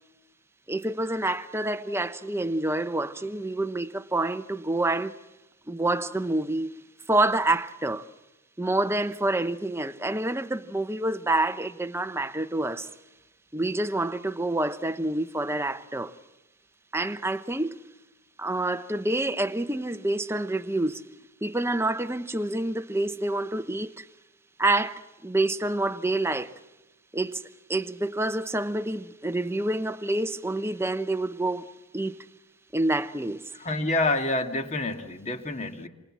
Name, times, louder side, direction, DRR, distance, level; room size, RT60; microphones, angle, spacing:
voice 1, 0.7-5.2 5.7-6.8 7.1-8.1 8.6-12.9 13.5-16.1 16.9-17.8 18.4-21.0 21.4-24.1 24.6-26.6 27.1-31.7 31.9-32.3 32.7-33.5, right 2 dB, 10° right, 0.8 m, -27 dB
voice 2, 33.6-35.9, left 2 dB, 30° left, 2.0 m, -27 dB
28.0 x 27.0 x 7.4 m
head